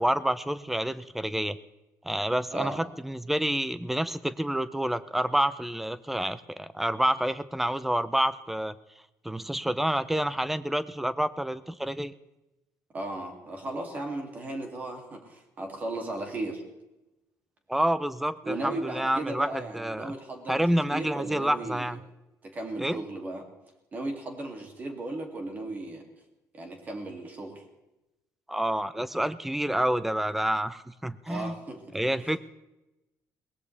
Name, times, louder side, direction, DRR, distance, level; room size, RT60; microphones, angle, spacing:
voice 1, 0.0-1.6 2.0-8.8 9.2-12.1 17.7-20.1 20.5-22.0 22.8-23.0 28.5-31.6 31.9-32.4, right 1 dB, 5° right, 15 dB, 0.5 m, -28 dB
voice 2, 12.9-16.6 18.4-22.0 22.4-23.5 23.9-26.0 26.5-27.6 31.3-32.0, right 2 dB, 25° right, 3 dB, 2.5 m, -36 dB
22.0 x 19.5 x 3.3 m, 0.97 s
cardioid pair, 170°, 6 cm